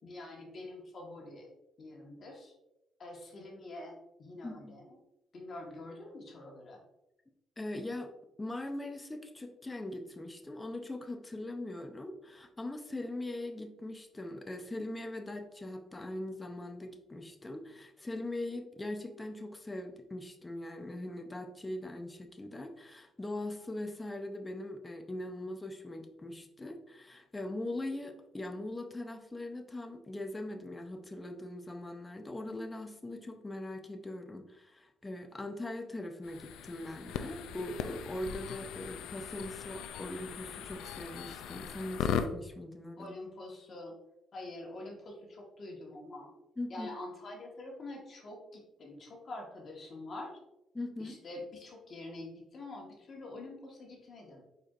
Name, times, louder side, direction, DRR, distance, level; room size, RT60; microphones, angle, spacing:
voice 1, 0.0-1.5 1.8-2.5 3.0-5.0 5.3-6.8 43.0-44.0 44.3-46.3 46.7-50.4 51.0-54.4, left 2 dB, 50° left, 0 dB, 1.4 m, -46 dB
voice 2, 4.4-4.8 7.6-8.1 8.4-43.1 46.6-46.9 50.7-51.2, left 1 dB, 20° left, 6 dB, 0.6 m, -41 dB
sound 1, 36.2-42.3, left 8 dB, 90° left, 0.3 m, -39 dB
4.9 x 4.4 x 2.4 m, 0.89 s
cardioid pair, 90°, 0 cm